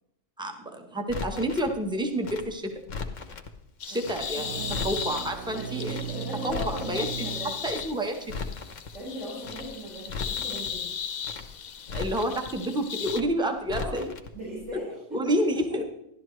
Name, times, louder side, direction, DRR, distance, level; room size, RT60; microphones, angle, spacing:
voice 1, 0.4-2.7 3.9-6.0 6.4-7.1 7.4-8.3 11.9-14.1 15.1-15.8, right 1 dB, 5° right, 4 dB, 0.9 m, -29 dB
Crackle, 1.1-1.7 2.2-3.5 4.0-4.3 4.5-5.3 5.8-6.1 6.3-7.1 7.6-7.9 8.2-8.9 9.4-9.7 10.0-10.7 11.2-11.5 11.8-12.5 13.0-13.3 13.6-14.3 14.6-14.7, left 4 dB, 80° left, 1.3 m, -37 dB
sound 1, 3.8-13.2, left 7 dB, 50° left, 0.5 m, -37 dB
voice 2, 3.9-4.9 5.5-7.5 8.9-11.0 13.8-14.0 14.3-15.5, equal, 90° right, -10 dB, 5.4 m, -38 dB
sound 2, 4.3-8.2, right 9 dB, 70° right, 1.0 m, -38 dB
12.5 x 12.0 x 3.2 m, 0.81 s
omnidirectional pair, 1.3 m